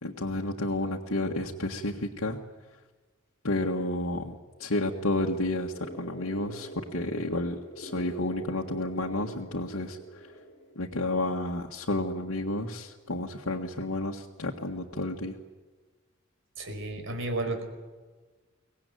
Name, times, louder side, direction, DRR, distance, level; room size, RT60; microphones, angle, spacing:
voice 1, 0.0-2.4 3.4-10.3 10.7-15.3, left 1 dB, 85° left, -1 dB, 1.7 m, -31 dB
sound 1, 5.7-10.7, right 1 dB, 40° left, 6.9 m, -45 dB
voice 2, 16.6-17.6, right 2 dB, 65° right, 5 dB, 5.2 m, -32 dB
23.5 x 18.5 x 9.3 m, 1.4 s
head